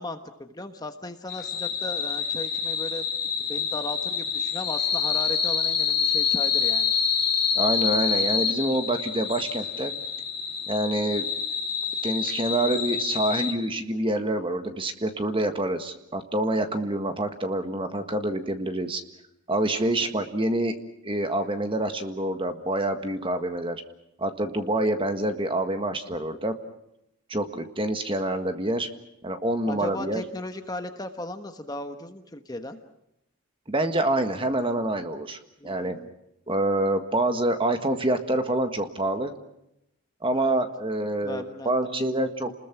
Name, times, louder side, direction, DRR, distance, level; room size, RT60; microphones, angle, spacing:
voice 1, 0.0-3.0 3.4-6.9 19.8-20.1 29.7-32.8 35.6-36.1 40.3-40.6 41.2-42.5, left 1 dB, 15° left, 7 dB, 1.3 m, -37 dB
sound 1, 1.3-13.5, left 6 dB, 40° left, 3.4 m, -27 dB
voice 2, 7.6-9.9 10.7-11.3 12.0-19.0 19.5-20.8 21.0-23.8 24.2-26.6 27.3-28.9 29.2-30.2 33.7-36.0 36.5-39.3 40.2-42.5, right 1 dB, 25° right, 7 dB, 1.6 m, -26 dB
30.0 x 21.0 x 6.1 m, 0.82 s
head